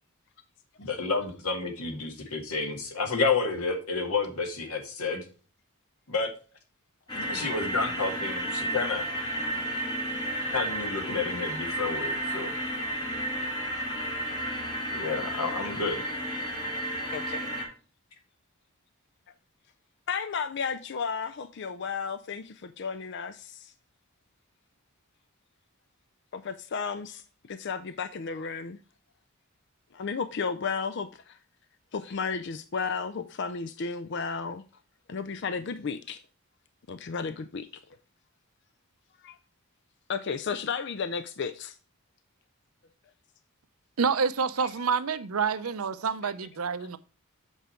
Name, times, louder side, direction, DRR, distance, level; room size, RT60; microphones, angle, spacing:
voice 1, 0.8-5.2 6.1-6.3 7.1-9.1 10.5-12.5 14.9-16.0, left 4 dB, 85° left, 2.0 m, -30 dB
sound 1, 7.1-17.7, right 1 dB, 20° left, 2.0 m, -32 dB
voice 2, 17.1-17.5 20.1-23.7 26.3-28.8 29.9-31.4 31.9-34.6 35.1-36.2 36.9-37.8 39.2-39.4 40.1-41.8 46.2-46.3, left 5 dB, 50° left, 0.4 m, -33 dB
voice 3, 44.0-47.0, right 5 dB, 80° right, 0.7 m, -28 dB
8.1 x 5.0 x 4.3 m
head